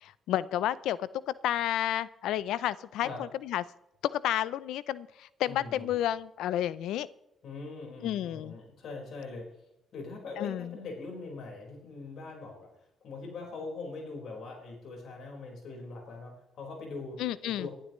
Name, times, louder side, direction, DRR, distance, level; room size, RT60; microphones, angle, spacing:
voice 1, 0.0-3.6 4.1-7.1 8.0-8.5 10.4-10.7 17.2-17.7, left 12 dB, 85° left, 18 dB, 0.5 m, -31 dB
voice 2, 5.5-5.9 7.4-9.5 9.9-17.7, left 3 dB, 70° left, 1 dB, 4.7 m, -42 dB
18.5 x 11.5 x 3.1 m, 0.87 s
cardioid pair, 90°, 0 cm